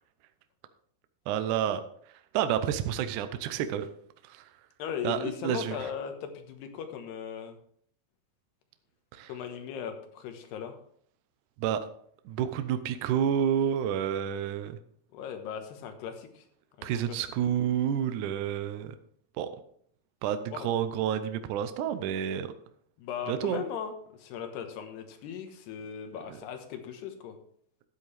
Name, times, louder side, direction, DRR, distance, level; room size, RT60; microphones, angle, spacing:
voice 1, 1.3-1.8 2.3-3.9 4.3-4.4 5.0-5.8 9.1-9.3 11.6-11.9 12.3-14.8 16.8-19.0 19.4-19.5 20.2-22.5 23.3-23.6 26.3-26.4, right 9 dB, 85° right, 10 dB, 1.7 m, -29 dB
voice 2, 4.8-7.6 9.3-10.8 15.1-16.4 16.8-17.2 20.5-20.7 23.0-27.4, left 8 dB, 85° left, 6 dB, 3.2 m, -38 dB
12.5 x 8.7 x 3.3 m, 0.63 s
omnidirectional pair, 4.6 m